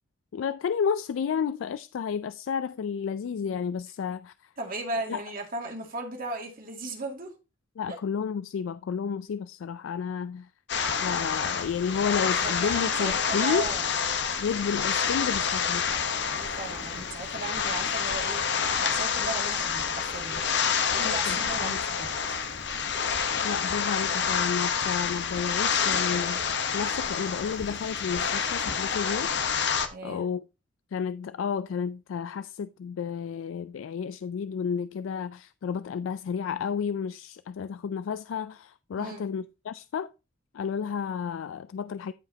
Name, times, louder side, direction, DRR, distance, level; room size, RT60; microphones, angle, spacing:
voice 1, 0.3-4.3 5.1-5.2 7.8-10.5 11.0-13.7 14.4-15.8 21.0-21.4 21.6-21.8 23.4-26.4 26.7-29.3 30.0-30.4 30.9-40.1 40.6-42.1, left 6 dB, 90° left, 0.3 m, -31 dB
voice 2, 4.6-7.3 7.9-8.0 12.4-13.9 16.3-20.4 20.9-22.1 29.9-30.3 39.0-39.3, right 2 dB, 50° right, 2.2 m, -36 dB
sound 1, 10.7-29.9, left 6 dB, 65° left, 1.0 m, -28 dB
14.0 x 5.0 x 2.8 m
head